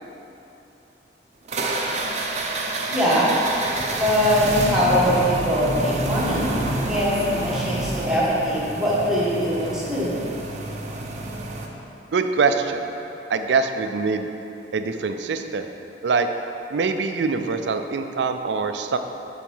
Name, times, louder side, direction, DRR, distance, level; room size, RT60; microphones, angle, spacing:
sound 1, 1.5-11.7, right 2 dB, 40° right, 0.7 m, -28 dB
voice 1, 2.9-3.3 3.9-6.5 6.8-10.2, equal, 5° right, -8 dB, 1.6 m, -22 dB
voice 2, 12.1-12.9 13.3-14.3 14.7-15.7 16.0-16.3 16.7-19.0, right 4 dB, 75° right, 7 dB, 0.4 m, -23 dB
7.4 x 4.4 x 5.4 m, 2.9 s
head